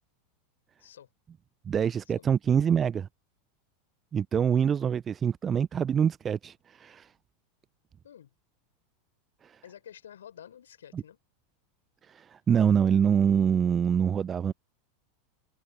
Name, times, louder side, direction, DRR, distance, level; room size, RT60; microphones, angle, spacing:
voice 1, 0.8-1.1 2.2-2.4 8.0-8.3 9.6-11.2, left 10 dB, 75° left, 5.0 m, -50 dB
voice 2, 1.7-3.1 4.1-7.1 9.4-9.6 10.9-11.0 12.1-14.5, right 8 dB, 25° right, 0.4 m, -25 dB
figure-of-eight pair, 85°, 0 cm